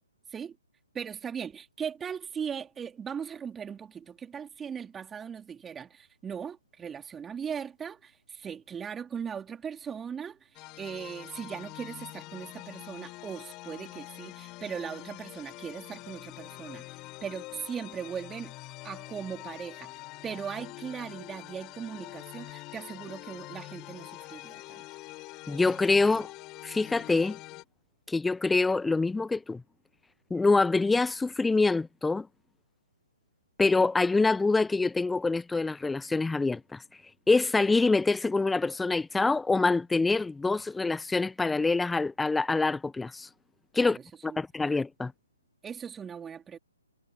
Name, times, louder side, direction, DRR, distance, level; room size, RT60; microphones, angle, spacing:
voice 1, 0.9-18.5 18.8-24.8 43.8-44.4 45.6-46.6, right 7 dB, 10° right, 3.5 m, -39 dB
sound 1, 10.5-27.6, left 22 dB, 25° left, 7.3 m, -45 dB
voice 2, 25.5-26.3 26.6-27.4 28.1-29.6 30.3-32.3 33.6-36.8 37.3-43.3 43.7-44.0 44.2-45.1, left 3 dB, 5° left, 0.6 m, -25 dB
figure-of-eight pair, 135°, 0 cm